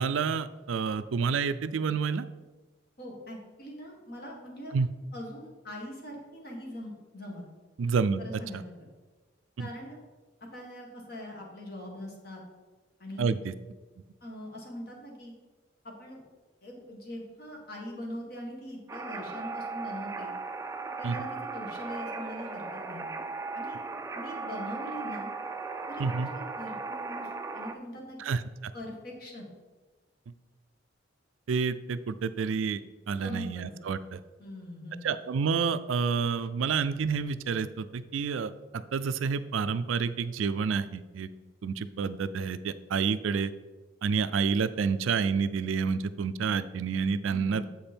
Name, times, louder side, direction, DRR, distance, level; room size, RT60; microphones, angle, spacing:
voice 1, 0.0-2.2 4.7-4.9 7.8-8.2 9.6-9.7 13.2-13.5 21.0-21.2 26.0-26.3 28.2-28.4 31.5-32.8 33.1-34.2 35.0-41.3 41.6-43.5 44.0-47.7, right 5 dB, 85° right, 13 dB, 0.4 m, -29 dB
voice 2, 3.0-4.8 5.1-7.4 8.2-8.9 9.6-10.0 10.5-12.4 13.0-13.4 14.2-15.3 15.8-16.2 16.6-20.3 21.0-23.1 23.5-23.8 24.1-25.3 25.9-26.3 26.6-28.2 28.7-29.5 33.2-33.9 34.4-35.1 47.3-47.7, equal, 50° left, 0 dB, 1.7 m, -42 dB
sound 1, 18.9-27.7, right 3 dB, 15° right, 0.3 m, -37 dB
7.8 x 5.2 x 4.4 m, 1.2 s
head